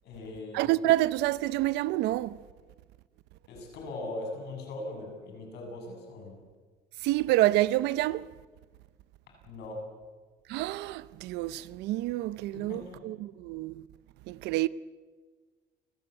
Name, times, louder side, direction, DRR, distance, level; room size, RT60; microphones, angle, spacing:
voice 1, 0.0-0.7 3.5-6.4 9.5-9.8 12.5-13.0, left 2 dB, 80° left, 7.5 m, -40 dB
voice 2, 0.5-2.4 7.0-8.3 10.5-13.8 14.3-14.7, right 16 dB, 90° right, 0.6 m, -28 dB
29.5 x 15.5 x 8.2 m
cardioid pair, 110°, 17 cm